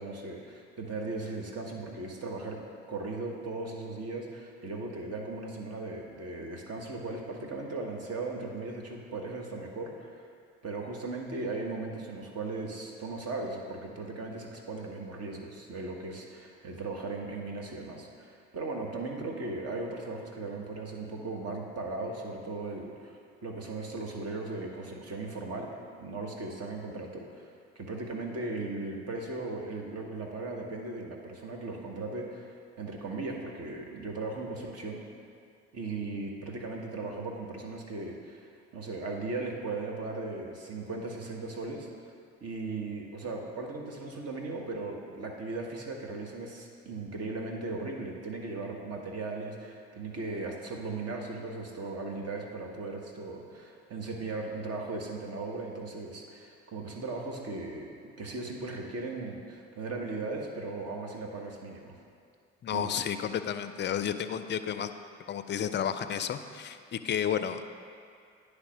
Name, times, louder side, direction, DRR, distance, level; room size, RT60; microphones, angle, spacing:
voice 1, 0.0-2.6 2.9-10.3 10.6-27.5 27.7-35.0 35.7-41.9 42.4-61.9 62.7-62.9, right 3 dB, 45° right, 1 dB, 1.3 m, -37 dB
voice 2, 62.6-64.9 65.3-67.6, left 9 dB, 35° left, 10 dB, 0.4 m, -32 dB
9.9 x 3.4 x 5.1 m, 2.3 s
hypercardioid pair, 55°, 34 cm